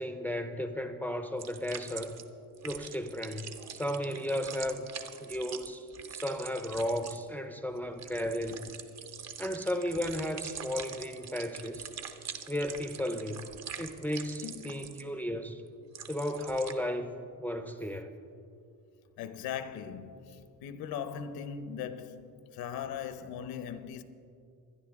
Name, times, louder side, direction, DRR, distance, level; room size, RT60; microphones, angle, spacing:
voice 1, 0.0-2.2 2.6-4.9 5.2-8.7 9.4-11.9 12.5-13.5 13.8-15.6 16.1-17.1 17.4-18.2, left 1 dB, 5° left, 0.5 m, -34 dB
sound 1, 1.4-2.3 2.5-16.7, right 7 dB, 45° right, 0.9 m, -44 dB
voice 2, 14.4-15.0 19.2-24.0, left 8 dB, 85° left, 0.9 m, -39 dB
24.0 x 10.0 x 3.6 m
cardioid pair, 160°, 35 cm